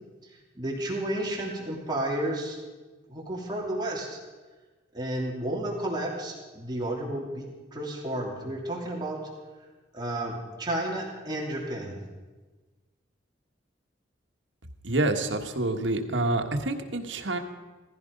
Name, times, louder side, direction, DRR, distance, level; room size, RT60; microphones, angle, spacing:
voice 1, 0.5-2.6 3.1-4.2 4.9-9.3 9.9-12.0, right 1 dB, 25° right, -2 dB, 2.9 m, -32 dB
voice 2, 14.8-17.4, right 2 dB, 80° right, 5 dB, 1.5 m, -27 dB
16.5 x 15.0 x 5.3 m, 1.3 s
head